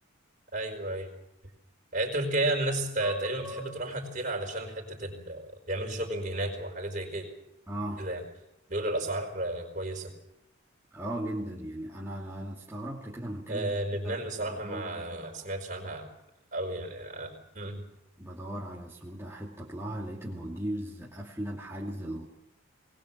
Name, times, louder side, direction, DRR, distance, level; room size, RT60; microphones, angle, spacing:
voice 1, 0.5-1.1 1.9-7.3 8.0-8.2 8.7-10.1 13.5-16.1 16.5-17.8, right 1 dB, 40° right, 2 dB, 4.7 m, -32 dB
voice 2, 3.0-3.7 7.7-8.1 10.9-13.8 14.0-15.5 18.2-22.3, right 1 dB, 10° right, -5 dB, 2.6 m, -38 dB
21.0 x 20.5 x 7.5 m, 0.82 s
head